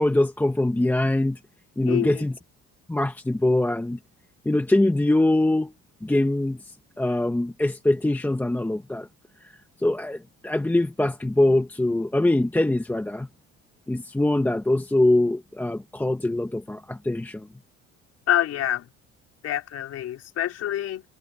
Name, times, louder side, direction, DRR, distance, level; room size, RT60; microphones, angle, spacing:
voice 1, 0.0-1.4 1.8-2.4 2.9-4.0 4.4-5.7 6.0-9.1 9.4-13.3 13.9-17.5, left 1 dB, 5° left, 1.1 m, -23 dB
voice 2, 1.9-2.2 18.3-18.9 19.4-21.0, left 12 dB, 55° left, 4.0 m, -26 dB
cardioid pair, 140°, 30 cm